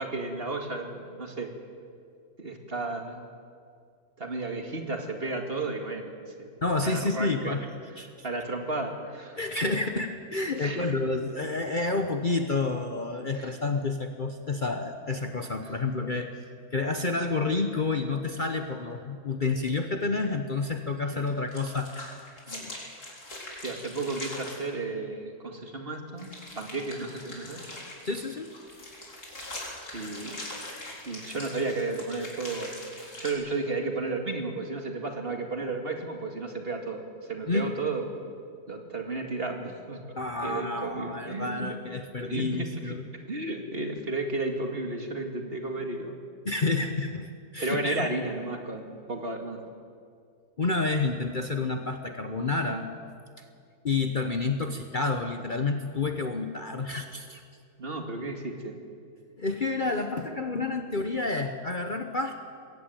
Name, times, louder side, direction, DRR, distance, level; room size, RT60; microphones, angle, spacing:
voice 1, 0.0-1.5 2.4-3.2 4.2-6.1 6.4-6.5 6.8-7.6 8.2-9.4 10.6-11.0 11.7-11.8 13.3-13.5 21.1-21.3 23.6-26.3 26.5-27.7 29.9-30.4 31.1-32.8 33.2-38.0 38.7-40.0 40.4-41.8 42.2-43.0 43.3-46.2 47.6-49.6 57.8-58.8, right 3 dB, 40° right, 3 dB, 2.3 m, -33 dB
voice 2, 6.6-7.7 8.0-8.1 9.4-16.3 16.7-21.9 22.5-22.8 28.0-28.5 37.5-37.7 40.1-43.1 46.4-48.1 50.6-52.9 53.4-53.5 53.8-57.4 59.4-62.4, left 3 dB, 35° left, 6 dB, 1.0 m, -29 dB
sound 1, 21.3-24.6 26.2-33.3, left 1 dB, 85° left, 4.6 m, -42 dB
21.5 x 16.5 x 9.1 m, 2.3 s
omnidirectional pair, 1.6 m